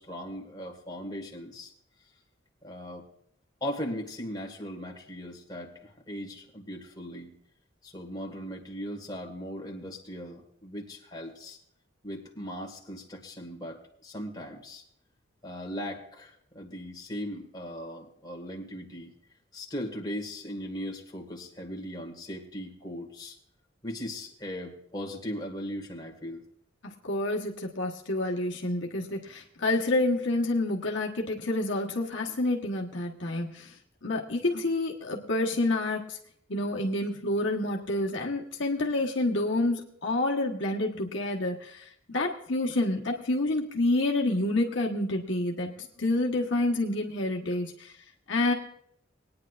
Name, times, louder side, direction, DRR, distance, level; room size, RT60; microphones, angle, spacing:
voice 1, 0.0-1.7 2.6-3.1 3.6-7.3 7.8-11.6 12.0-14.8 15.4-19.1 19.5-23.4 23.8-26.4, equal, 20° left, 0 dB, 1.8 m, -38 dB
voice 2, 27.0-33.8 34.0-36.2 36.5-47.9 48.3-48.5, left 2 dB, 65° left, -1 dB, 1.3 m, -28 dB
21.0 x 9.7 x 2.5 m, 0.67 s
head